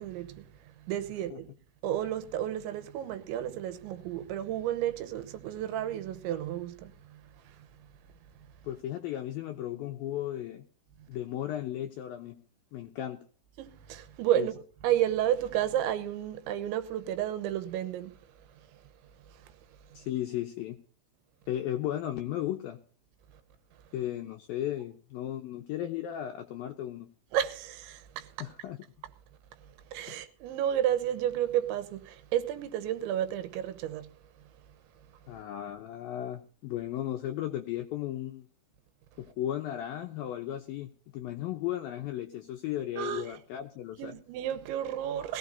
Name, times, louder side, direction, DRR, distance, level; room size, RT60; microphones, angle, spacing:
voice 1, 0.0-1.5 1.8-7.7 13.6-18.2 19.3-19.5 19.9-20.0 27.3-28.5 29.9-34.1 43.0-43.4 44.0-45.4, right 11 dB, 90° right, 3.4 m, -32 dB
voice 2, 8.6-10.6 11.1-12.4 12.7-13.2 14.4-14.5 19.9-20.8 21.5-22.8 23.9-27.1 28.4-28.8 35.3-38.5 39.2-44.1, left 12 dB, 80° left, 2.1 m, -35 dB
20.5 x 15.5 x 2.7 m
omnidirectional pair, 5.2 m